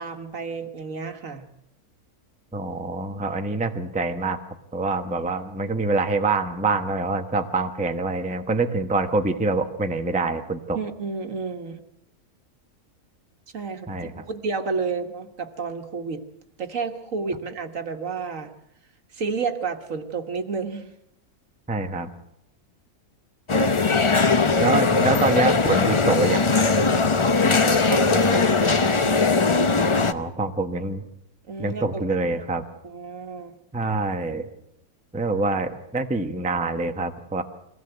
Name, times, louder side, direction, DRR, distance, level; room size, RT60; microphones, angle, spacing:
voice 1, 0.0-1.5 10.7-11.8 13.5-16.2 16.6-18.5 19.1-20.9 27.4-29.1 31.5-32.2 32.8-33.6, right 5 dB, 60° right, 6 dB, 1.7 m, -31 dB
voice 2, 2.5-4.4 4.7-10.8 13.9-14.3 21.7-22.1 24.6-26.7 30.0-31.1 31.6-32.6 33.7-34.5 35.1-37.4, right 3 dB, 5° right, 5 dB, 1.0 m, -25 dB
sound 1, 23.5-30.1, left 4 dB, 30° left, 0.6 m, -20 dB
23.5 x 17.0 x 8.0 m, 0.82 s
omnidirectional pair, 1.6 m